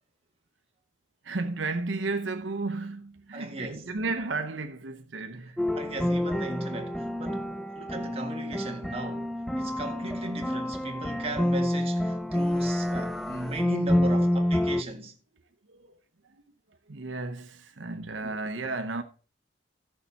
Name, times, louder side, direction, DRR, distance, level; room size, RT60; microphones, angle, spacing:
voice 1, 1.2-5.7 7.2-7.4 15.7-16.0 16.2-16.4 16.9-19.0, right 3 dB, 80° right, 0.9 m, -33 dB
voice 2, 3.3-3.8 5.7-7.5 7.8-15.1 18.2-18.5, right 1 dB, 30° right, 1.7 m, -37 dB
sound 1, 5.6-14.8, left 1 dB, ahead, 0.4 m, -28 dB
14.5 x 6.6 x 4.1 m
head